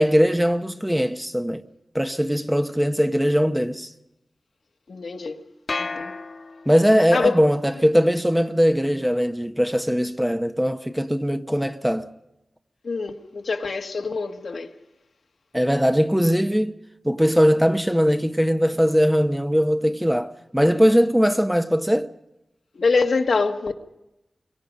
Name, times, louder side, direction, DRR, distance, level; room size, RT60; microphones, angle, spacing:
voice 1, 0.0-1.6 1.9-3.9 6.7-12.1 15.5-16.8 17.0-22.1, equal, 5° right, 1.0 m, -20 dB
voice 2, 4.9-5.4 5.8-6.1 7.1-7.4 12.8-14.7 22.7-23.7, left 4 dB, 80° left, 1.6 m, -24 dB
sound 1, 5.7-7.0, left 3 dB, 65° left, 1.5 m, -32 dB
27.5 x 23.5 x 5.3 m
wide cardioid pair, 75°, 0 cm